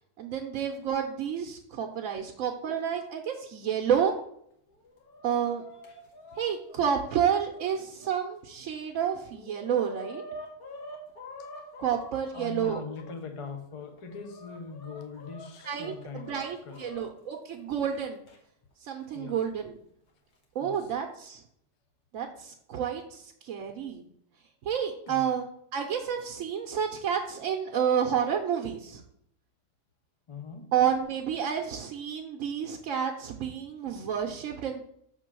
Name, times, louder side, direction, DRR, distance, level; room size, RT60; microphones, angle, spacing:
voice 1, 0.2-4.1 5.2-5.6 6.4-10.2 11.8-12.8 15.6-18.2 18.8-19.8 20.5-21.4 22.1-24.0 24.6-25.4 25.7-29.0 30.7-34.8, right 8 dB, 65° right, 1.0 m, -30 dB
Chicken rooster, 4.7-8.2 8.7-8.8 9.1-13.1 13.8-17.0 18.3-18.4 19.4-19.5 20.4-20.8, left 1 dB, 75° left, 1.8 m, -46 dB
voice 2, 12.3-17.0 19.0-19.4 20.6-20.9 25.1-25.4 30.3-30.7, left 4 dB, 35° left, 0.5 m, -41 dB
6.3 x 3.7 x 6.0 m
omnidirectional pair, 1.6 m